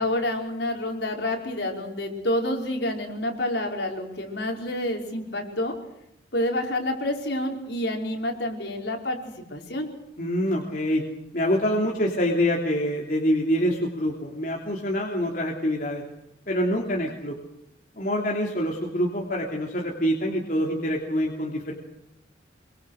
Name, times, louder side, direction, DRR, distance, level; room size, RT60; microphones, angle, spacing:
voice 1, 0.0-5.7 6.3-9.9, left 1 dB, 65° left, 1 dB, 5.0 m, -28 dB
voice 2, 10.2-11.0 11.3-16.0 16.5-17.4 17.9-21.7, equal, 45° left, -1 dB, 3.1 m, -25 dB
26.0 x 24.0 x 6.5 m, 0.84 s
head